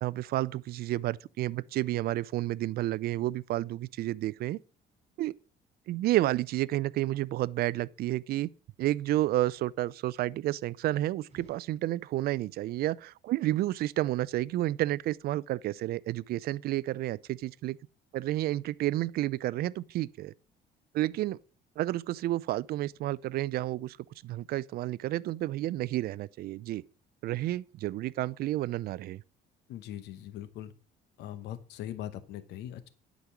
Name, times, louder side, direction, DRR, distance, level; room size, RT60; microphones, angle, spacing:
voice 1, 0.0-4.6 5.2-5.3 5.9-8.5 8.8-17.8 18.1-20.3 20.9-21.4 21.8-24.0 24.2-26.8 27.2-29.2, right 15 dB, 65° right, 0.4 m, -30 dB
sound 1, 11.2-12.5, right 3 dB, 35° right, 4.8 m, -58 dB
voice 2, 29.7-30.7 31.2-32.9, left 11 dB, 80° left, 1.0 m, -41 dB
11.0 x 5.2 x 6.0 m
cardioid pair, 110°, 17 cm